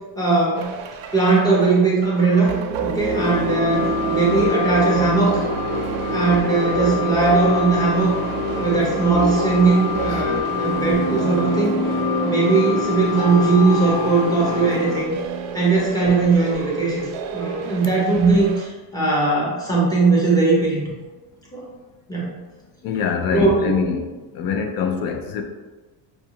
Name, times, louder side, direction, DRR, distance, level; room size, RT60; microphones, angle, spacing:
voice 1, 0.2-0.7 1.1-3.8 4.1-5.4 6.1-8.1 8.6-11.7 12.2-15.1 15.5-20.8 21.5-21.6 22.1-22.3 23.3-23.7, right 3 dB, 10° left, -6 dB, 0.8 m, -19 dB
sound 1, 0.6-18.7, right 4 dB, 75° right, 0.5 m, -28 dB
sound 2, 3.1-15.0, left 4 dB, 70° left, 1.0 m, -26 dB
voice 2, 22.8-24.0 24.3-25.4, left 6 dB, 45° left, 4 dB, 0.5 m, -24 dB
5.4 x 2.2 x 2.8 m, 1.2 s
cardioid pair, 170°, 49 cm